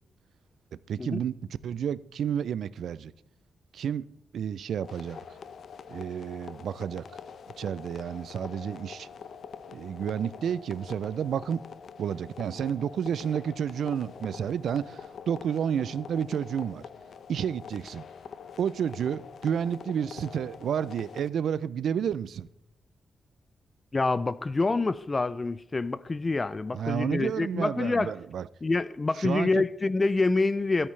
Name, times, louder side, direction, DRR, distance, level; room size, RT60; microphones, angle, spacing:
voice 1, 0.9-1.3 1.6-3.1 3.7-4.1 4.3-5.2 5.9-7.0 7.6-9.1 9.7-11.6 12.0-16.8 17.3-18.0 18.6-22.5 26.7-28.5 29.2-29.5, right 8 dB, 85° right, 0.4 m, -30 dB
sound 1, 4.8-21.3, left 6 dB, 70° left, 0.7 m, -45 dB
voice 2, 23.9-28.1 28.6-30.9, left 3 dB, 25° left, 0.4 m, -27 dB
23.0 x 8.9 x 3.2 m
wide cardioid pair, 140°, 0 cm